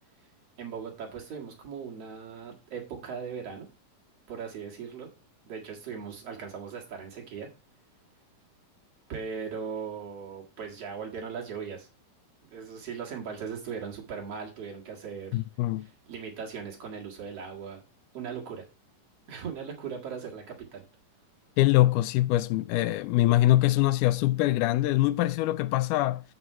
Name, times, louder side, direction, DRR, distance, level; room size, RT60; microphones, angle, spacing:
voice 1, 0.6-3.7 4.3-5.1 5.5-7.5 9.1-11.9 12.5-15.4 15.8-17.8 18.1-18.6 19.3-20.8, right 6 dB, 55° right, 2.7 m, -38 dB
voice 2, 15.3-15.9 21.6-26.2, left 16 dB, 85° left, 2.1 m, -23 dB
8.0 x 6.1 x 4.3 m
omnidirectional pair, 3.6 m